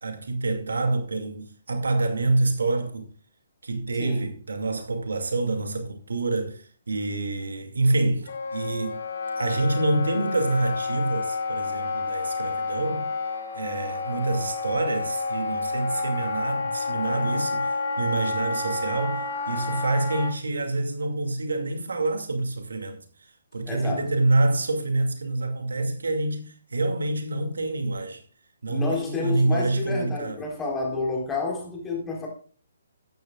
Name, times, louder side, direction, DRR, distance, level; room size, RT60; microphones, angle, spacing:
voice 1, 0.0-3.1 3.6-9.0 9.4-13.1 13.5-28.2 28.6-30.4, right 2 dB, 75° right, 2.3 m, -27 dB
Wind instrument woodwind instrument, 8.3-20.3, left 3 dB, 60° left, 2.0 m, -30 dB
voice 2, 23.7-24.1 28.7-32.3, left 3 dB, 10° left, 4.3 m, -29 dB
13.5 x 10.5 x 2.4 m
figure-of-eight pair, 140°, 0 cm